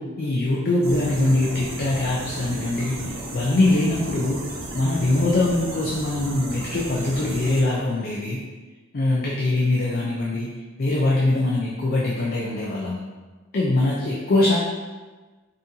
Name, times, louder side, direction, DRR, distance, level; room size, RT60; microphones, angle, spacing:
voice 1, 0.0-4.4 4.7-8.4 8.9-10.5 10.8-13.0 13.5-14.6, left 2 dB, 45° left, -4 dB, 0.5 m, -22 dB
sound 1, 0.8-7.6, right 1 dB, 65° right, 0.8 m, -34 dB
4.1 x 3.7 x 2.7 m, 1.3 s
head